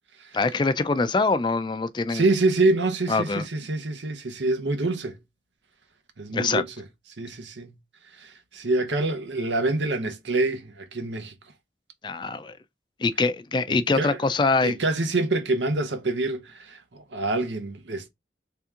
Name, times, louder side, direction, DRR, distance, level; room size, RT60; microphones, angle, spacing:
voice 1, 0.3-2.3 3.1-3.4 6.3-6.6 12.0-12.5 13.0-14.8, left 3 dB, 25° left, 0.3 m, -24 dB
voice 2, 2.1-5.2 6.2-6.8 7.2-7.7 8.2-11.3 13.7-14.2 14.6-18.1, right 2 dB, 90° right, 0.8 m, -26 dB
3.4 x 2.8 x 3.5 m
head